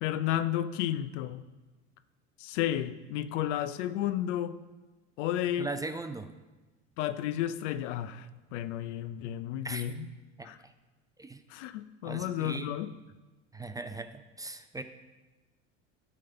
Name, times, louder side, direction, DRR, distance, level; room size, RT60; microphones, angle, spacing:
voice 1, 0.0-1.4 2.4-4.6 5.2-5.7 7.0-10.1 10.4-10.6 11.5-12.9, left 11 dB, 80° left, 13 dB, 0.6 m, -32 dB
voice 2, 5.6-6.3 9.6-9.8 10.4-10.5 11.2-11.4 12.0-12.7 13.5-14.1 14.4-14.8, right 3 dB, 10° right, 9 dB, 0.4 m, -38 dB
10.5 x 3.7 x 6.7 m, 1.2 s
supercardioid pair, 85°, 36 cm